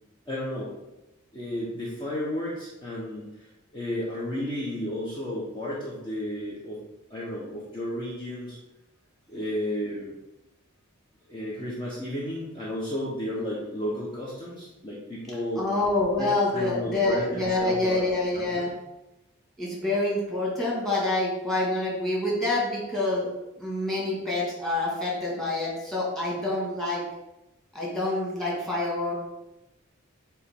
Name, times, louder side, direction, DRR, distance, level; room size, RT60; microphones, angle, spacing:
voice 1, 0.3-0.7 1.3-6.8 7.1-8.6 9.3-10.2 11.3-15.7 16.2-18.1 18.3-18.7, left 1 dB, 25° left, -6 dB, 0.9 m, -33 dB
voice 2, 15.6-18.7 19.6-23.3 23.6-27.0 27.7-29.1, left 2 dB, ahead, -5 dB, 1.9 m, -27 dB
8.7 x 3.0 x 3.6 m, 0.96 s
head